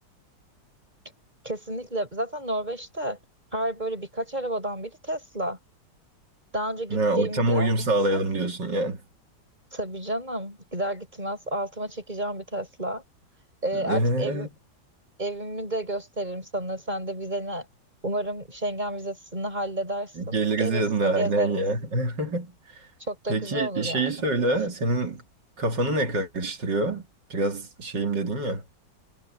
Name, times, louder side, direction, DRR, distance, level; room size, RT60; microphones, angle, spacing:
voice 1, 1.4-3.2 3.5-5.6 6.5-7.7 9.7-13.0 13.6-14.5 15.2-17.6 18.0-21.5 23.0-24.3, right 1 dB, 25° right, 6.5 m, -31 dB
voice 2, 6.9-9.0 13.7-14.5 20.2-22.5 23.3-25.2 25.6-27.0 27.3-28.6, right 2 dB, 70° right, 3.3 m, -25 dB
omnidirectional pair, 2.0 m